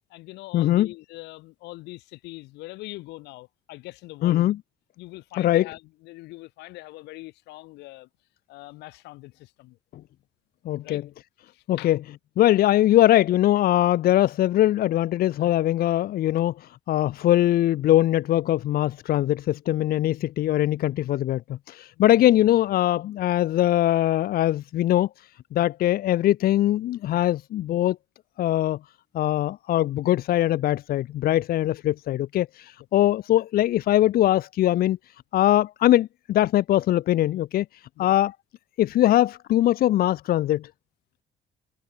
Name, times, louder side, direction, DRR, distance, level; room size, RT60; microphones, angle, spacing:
voice 1, 0.0-4.5 5.0-8.1 8.5-9.8 10.8-11.0 11.5-12.0 21.7-22.2 38.0-38.2, left 20 dB, 90° left, 4.2 m, -42 dB
voice 2, 0.5-0.9 4.2-4.6 5.4-5.6 10.6-11.0 11.7-12.0 12.4-25.1 25.5-28.0 28.4-28.8 29.1-35.0 35.3-37.6 38.0-38.3 38.8-40.7, left 13 dB, 65° left, 0.9 m, -21 dB
cardioid pair, 110°, 17 cm